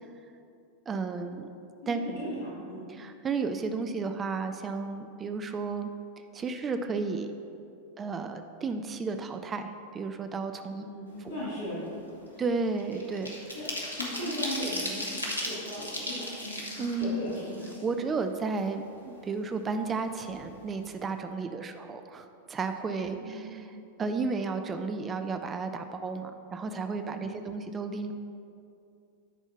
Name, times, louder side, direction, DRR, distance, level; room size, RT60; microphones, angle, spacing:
voice 1, 0.9-1.5 1.9-2.0 2.9-5.9 6.3-7.3 8.0-10.8 11.2-11.3 12.4-13.4 16.8-17.4 17.8-28.1, right 4 dB, 20° right, 7 dB, 0.5 m, -33 dB
voice 2, 1.8-2.8 10.8-12.0 12.3-12.4 13.5-13.6 14.0-15.0 15.4-16.6 16.9-17.6 23.1-23.6 27.1-27.5, equal, 70° left, -10 dB, 2.1 m, -37 dB
sound 1, 11.2-11.4 11.8-18.2 18.6-18.7 19.0-20.0 20.3-20.4 20.7-21.0, left 1 dB, 90° right, 1.4 m, -37 dB
10.0 x 4.5 x 5.7 m, 2.5 s
figure-of-eight pair, 90°, 0 cm